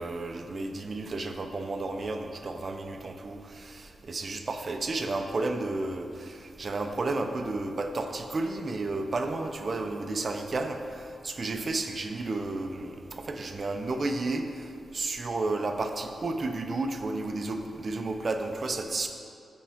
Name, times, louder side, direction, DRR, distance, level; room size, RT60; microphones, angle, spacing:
voice 1, 0.0-14.6 14.9-19.1, right 2 dB, 40° right, 6 dB, 0.4 m, -32 dB
9.6 x 3.5 x 4.3 m, 2.5 s
wide cardioid pair, 135°, 0 cm